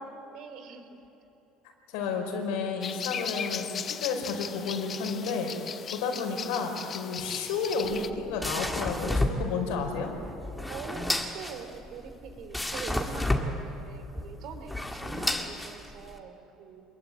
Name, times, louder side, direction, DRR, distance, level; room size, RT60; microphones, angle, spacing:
voice 1, 0.3-1.0 10.7-16.8, right 6 dB, 60° right, 7 dB, 3.3 m, -43 dB
voice 2, 1.9-5.5 5.9-10.1, left 5 dB, 90° left, 3 dB, 5.0 m, -31 dB
sound 1, 2.8-8.1, left 7 dB, 35° left, 1.0 m, -37 dB
sound 2, 7.8-16.2, left 1 dB, 5° left, 1.9 m, -32 dB
26.5 x 22.0 x 9.0 m, 3.0 s
cardioid pair, 135°, 0 cm